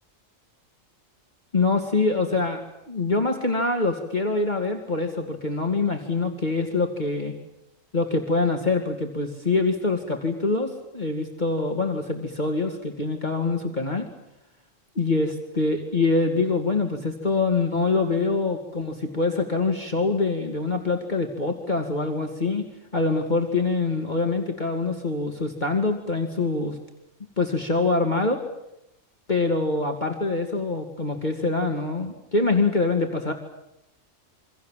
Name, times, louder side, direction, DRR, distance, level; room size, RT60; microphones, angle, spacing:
voice 1, 1.5-2.6 2.9-7.3 7.9-14.1 15.0-22.7 22.9-26.8 27.4-28.4 29.3-33.3, left 3 dB, 35° left, 3 dB, 2.5 m, -24 dB
27.5 x 25.0 x 7.5 m, 0.86 s
omnidirectional pair, 1.3 m